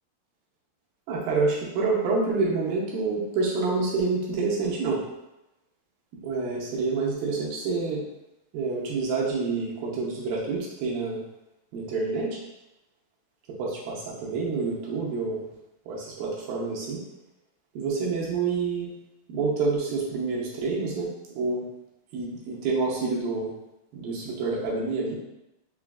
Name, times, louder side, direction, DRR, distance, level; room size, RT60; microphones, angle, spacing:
voice 1, 1.1-5.0 6.1-8.0 8.5-11.2 11.7-12.4 13.6-15.4 15.9-17.0 17.8-18.9 19.3-21.1 21.4-21.6 22.1-23.5 23.9-25.1, right 4 dB, 80° right, -4 dB, 2.3 m, -27 dB
5.8 x 2.4 x 2.3 m, 0.92 s
omnidirectional pair, 4.4 m